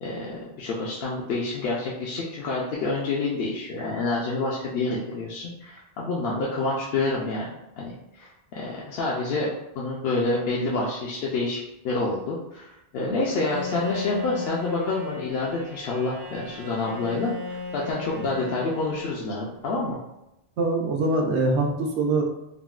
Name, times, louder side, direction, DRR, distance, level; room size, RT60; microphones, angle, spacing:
voice 1, 0.0-7.5 7.8-11.6 11.8-20.0, left 3 dB, 65° left, -5 dB, 0.7 m, -28 dB
Bowed string instrument, 13.2-19.5, left 5 dB, 35° right, 0.4 m, -36 dB
voice 2, 20.6-22.2, right 2 dB, 80° right, 1 dB, 0.9 m, -23 dB
3.7 x 2.1 x 2.3 m, 0.89 s
omnidirectional pair, 1.1 m